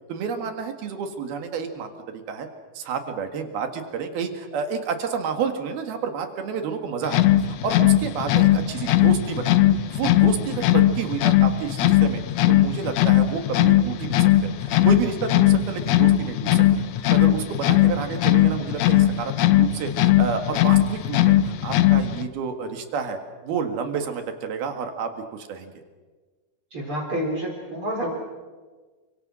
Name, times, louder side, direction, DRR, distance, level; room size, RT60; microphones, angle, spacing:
voice 1, 0.1-2.5 2.7-9.6 9.9-12.2 12.5-16.7 17.1-25.7, right 6 dB, 80° right, 6 dB, 3.8 m, -30 dB
sound 1, 7.0-22.3, left 13 dB, 80° left, 1.5 m, -19 dB
voice 2, 26.7-28.1, equal, 35° right, 0 dB, 4.7 m, -29 dB
29.5 x 25.5 x 6.3 m, 1.4 s
omnidirectional pair, 4.4 m